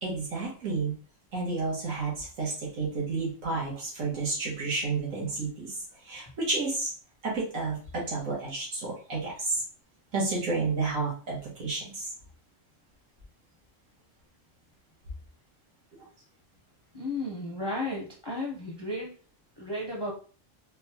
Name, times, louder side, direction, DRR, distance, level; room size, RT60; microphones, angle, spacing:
voice 1, 0.0-0.9 1.3-6.9 7.2-9.6 10.1-12.1, right 3 dB, 90° right, -5 dB, 1.5 m, -31 dB
voice 2, 16.9-19.1 19.6-20.1, left 1 dB, 35° left, -2 dB, 0.4 m, -33 dB
3.9 x 2.2 x 2.7 m, 0.39 s
omnidirectional pair, 1.3 m